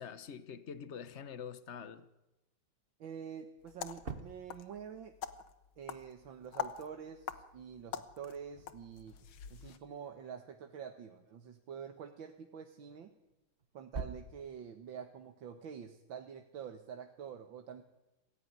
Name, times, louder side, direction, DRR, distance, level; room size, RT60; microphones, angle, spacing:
voice 1, 0.0-2.0, left 7 dB, 40° left, 1.3 m, -45 dB
voice 2, 3.0-5.1 5.8-9.1 9.5-13.1 13.7-17.8, right 7 dB, 75° right, 2.1 m, -47 dB
sound 1, 3.5-5.3 8.1-11.7 12.9-15.1, right 4 dB, 30° right, 1.3 m, -49 dB
sound 2, 3.6-9.8, left 9 dB, 85° left, 2.0 m, -45 dB
27.5 x 16.0 x 9.6 m
omnidirectional pair, 2.2 m